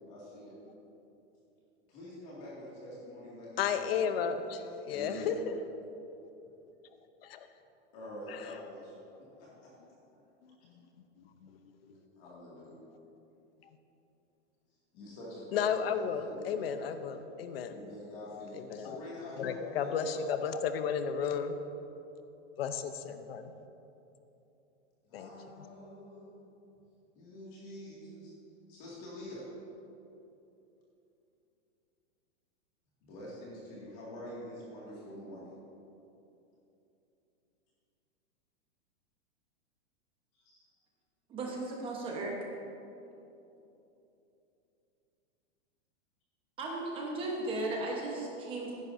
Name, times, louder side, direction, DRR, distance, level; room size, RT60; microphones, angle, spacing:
voice 1, 0.1-0.6 1.9-4.3 4.9-5.3 7.9-8.9 9.4-9.7 11.8-12.8 14.9-16.9 17.6-20.3 25.0-26.4 27.1-28.3 28.7-29.5 33.0-35.6 40.3-40.7, left 1 dB, 35° left, -6 dB, 2.3 m, -46 dB
voice 2, 3.6-4.6 4.9-5.5 7.2-7.5 8.3-8.5 11.4-11.6 15.5-17.7 18.5-19.0 19.4-21.5 22.6-23.5 25.1-25.3, left 7 dB, 55° left, 9 dB, 0.8 m, -33 dB
voice 3, 41.3-42.4 46.6-48.7, right 2 dB, 15° right, -1 dB, 1.2 m, -36 dB
15.0 x 11.0 x 2.7 m, 2.9 s
supercardioid pair, 170°, 36 cm